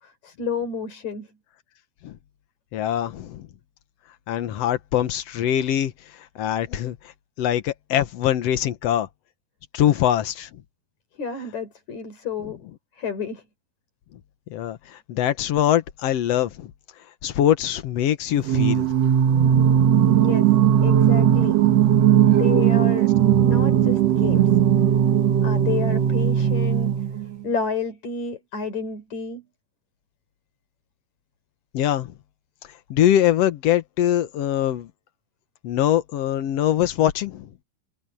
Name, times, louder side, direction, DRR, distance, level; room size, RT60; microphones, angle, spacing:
voice 1, 0.0-1.3 11.2-12.6 13.0-13.4 20.2-20.5 20.8-21.6 22.3-23.1 23.4-24.5 25.4-27.0 27.4-29.4, left 5 dB, 50° left, 5.9 m, -30 dB
voice 2, 2.7-3.5 4.3-5.9 6.3-7.0 7.4-9.1 9.7-10.5 14.5-16.7 17.2-18.9 19.9-20.1 21.6-21.9 31.7-32.1 32.9-34.9 35.6-37.5, left 11 dB, 65° left, 1.6 m, -23 dB
Singing, 18.4-27.4, right 9 dB, 60° right, 2.0 m, -18 dB
omnidirectional pair, 4.1 m